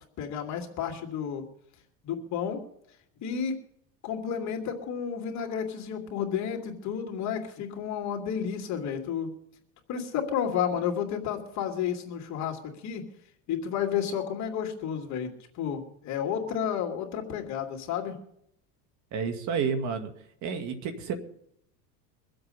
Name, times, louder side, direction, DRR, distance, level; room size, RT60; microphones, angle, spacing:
voice 1, 0.2-1.4 2.0-2.6 3.2-3.5 4.0-9.3 9.9-13.0 13.5-18.2, left 8 dB, 45° left, 2 dB, 2.5 m, -31 dB
voice 2, 19.1-20.1 20.4-21.2, right 6 dB, 50° right, 7 dB, 2.2 m, -30 dB
23.5 x 7.8 x 5.4 m, 0.72 s
supercardioid pair, 120°, 38 cm